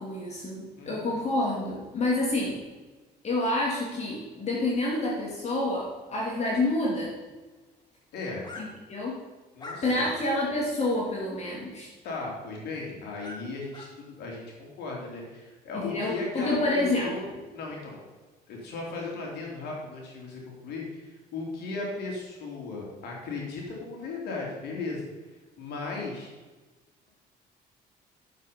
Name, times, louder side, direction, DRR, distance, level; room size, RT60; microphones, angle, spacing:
voice 1, 0.0-2.6 3.2-7.1 8.6-9.2 9.8-11.9 15.8-17.4, left 2 dB, 40° left, -3 dB, 3.0 m, -28 dB
voice 2, 0.8-1.1 8.1-8.5 9.5-10.1 12.0-18.0 18.5-25.1 25.6-26.3, left 3 dB, 75° left, -2 dB, 3.4 m, -36 dB
sound 1, 8.4-8.6 9.6-10.2 10.8-10.9 13.2-13.4 13.7-13.9, left 3 dB, 25° left, 2.0 m, -41 dB
11.5 x 7.3 x 5.4 m, 1.3 s
cardioid pair, 110°, 17 cm